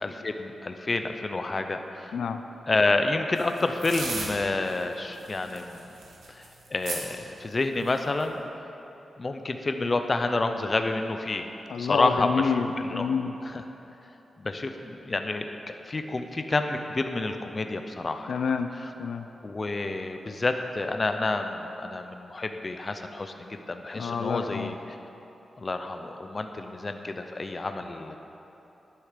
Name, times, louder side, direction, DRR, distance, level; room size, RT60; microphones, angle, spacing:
voice 1, 0.0-2.2 2.7-5.8 6.3-6.5 6.7-8.4 9.2-11.5 11.8-13.1 13.4-13.6 14.4-15.5 15.9-18.3 18.8-18.9 19.4-24.7 25.6-28.2, left 2 dB, 25° left, 6 dB, 0.5 m, -29 dB
sound 1, 3.4-4.3 4.7-4.8 5.1-7.0 7.8-8.2, right 3 dB, 80° right, 2.0 m, -36 dB
voice 2, 11.7-13.3 18.3-19.3 24.0-24.7, left 6 dB, 85° left, 7 dB, 0.5 m, -28 dB
11.0 x 9.9 x 5.1 m, 3.0 s
wide cardioid pair, 180°, 0 cm